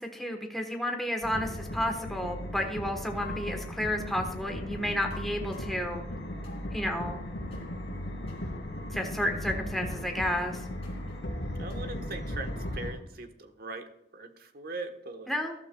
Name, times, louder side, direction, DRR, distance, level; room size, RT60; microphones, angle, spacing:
voice 1, 0.0-6.0 6.7-7.2 8.9-10.6 15.3-15.5, left 1 dB, ahead, 2 dB, 1.1 m, -31 dB
sound 1, 1.2-12.9, left 1 dB, 75° left, 3.1 m, -37 dB
sound 2, 3.1-4.1 5.1-5.8 6.4-6.7 7.5-7.7 8.3-8.4 9.0-9.2 9.9-10.0 10.5-11.2 11.7-11.8, left 4 dB, 35° left, 3.2 m, -49 dB
voice 2, 11.6-15.4, right 2 dB, 55° right, 7 dB, 1.1 m, -41 dB
14.5 x 12.0 x 2.3 m, 0.85 s
head